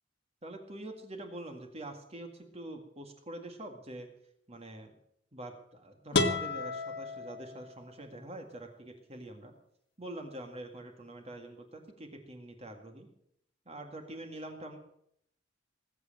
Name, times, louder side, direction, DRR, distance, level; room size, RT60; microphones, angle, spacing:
voice 1, 0.4-4.1 4.5-4.9 5.3-9.5 10.0-13.1 13.7-14.8, right 1 dB, 30° right, 4 dB, 1.9 m, -45 dB
sound 1, 6.1-8.0, left 3 dB, 60° left, 1.6 m, -32 dB
20.0 x 8.1 x 7.5 m, 0.71 s
head